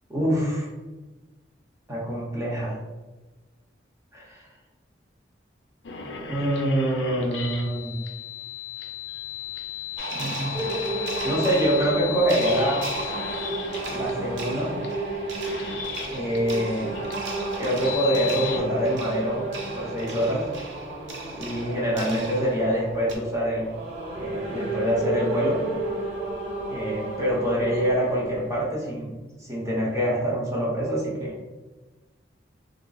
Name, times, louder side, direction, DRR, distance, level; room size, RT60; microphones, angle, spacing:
voice 1, 0.1-0.7 1.9-2.7 4.1-4.4 6.2-8.0 10.1-10.6 11.2-12.9 13.9-14.8 16.1-16.9 17.6-20.5 21.3-23.7 24.1-25.6 26.7-31.4, equal, 15° right, -5 dB, 0.8 m, -25 dB
sound 1, 5.8-18.6, left 9 dB, 70° left, 0.5 m, -36 dB
sound 2, 10.0-23.2, right 2 dB, 75° right, 0.6 m, -36 dB
sound 3, 10.5-28.6, right 2 dB, 40° right, 1.1 m, -33 dB
2.4 x 2.1 x 3.9 m, 1.2 s
head